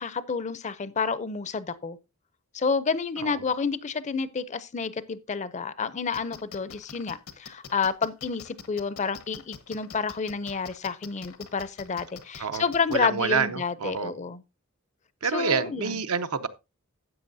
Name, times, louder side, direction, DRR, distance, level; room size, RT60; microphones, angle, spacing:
voice 1, 0.0-2.0 2.5-14.4 15.3-16.0, left 5 dB, 35° left, 0.5 m, -29 dB
sound 1, 6.1-13.0, left 6 dB, 80° left, 1.1 m, -44 dB
voice 2, 12.4-14.1 15.2-16.5, right 5 dB, 85° right, 0.8 m, -28 dB
12.5 x 8.2 x 2.6 m
head